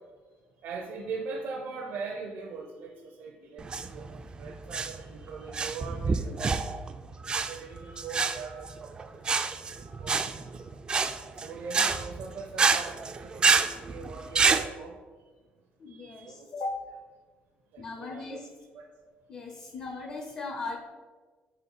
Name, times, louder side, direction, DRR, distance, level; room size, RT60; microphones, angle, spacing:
voice 1, 0.6-3.7 3.9-4.1 4.4-6.6 7.2-9.2 9.7-10.2 11.4-15.0 15.9-16.5 17.7-18.4 18.7-18.9, right 4 dB, 65° right, 0 dB, 0.6 m, -41 dB
sound 1, 3.6-14.6, right 5 dB, 25° right, 0.3 m, -28 dB
voice 2, 15.8-16.9 17.8-18.5 19.0-20.8, left 3 dB, 40° left, 4 dB, 0.6 m, -38 dB
4.2 x 4.2 x 5.3 m, 1.4 s
cardioid pair, 140°, 4 cm